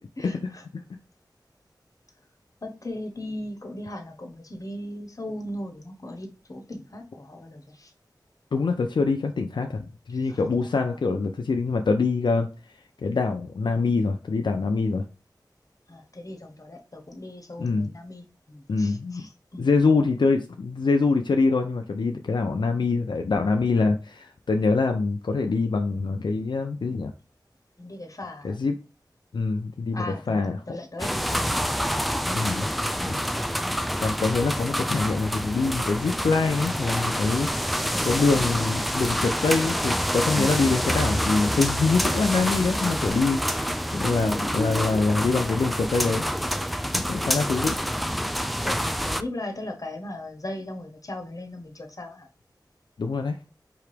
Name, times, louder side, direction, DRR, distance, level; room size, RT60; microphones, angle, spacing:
voice 1, 0.2-0.6 2.6-7.9 10.1-10.4 10.9-11.0 15.9-19.7 27.8-28.5 29.9-31.6 37.9-38.1 48.6-52.3, left 1 dB, 50° left, 1.1 m, -37 dB
voice 2, 8.5-12.5 13.0-15.0 17.6-17.9 18.7-19.3 19.6-27.1 28.4-28.7 29.3-30.6 32.3-32.7 33.1-33.2 34.0-37.8 38.1-46.2 46.9-47.8 53.0-53.4, left 4 dB, 85° left, 0.4 m, -24 dB
sound 1, 31.0-49.2, equal, ahead, 0.3 m, -27 dB
4.7 x 2.9 x 3.3 m
wide cardioid pair, 55°, 8 cm